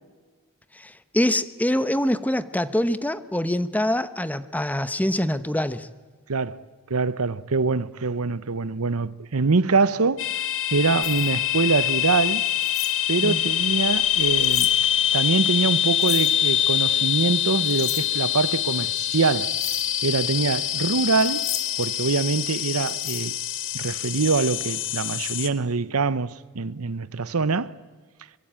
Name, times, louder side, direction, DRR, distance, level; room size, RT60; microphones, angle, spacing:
voice 1, 0.7-5.9 13.2-13.4, left 1 dB, 5° left, 0.9 m, -25 dB
voice 2, 6.3-10.3 10.7-12.4 13.1-14.7 15.1-19.6 20.0-21.5 21.8-23.3 23.7-27.8, right 4 dB, 85° right, 0.9 m, -24 dB
sound 1, 10.2-25.5, left 10 dB, 65° left, 1.6 m, -24 dB
sound 2, 11.0-11.3 12.5-12.9 14.1-14.7 16.0-16.3 17.4-18.1 19.0-19.2 19.5-19.9 21.2-21.9 22.9-23.2, left 10 dB, 50° left, 2.7 m, -34 dB
24.5 x 23.5 x 8.9 m
head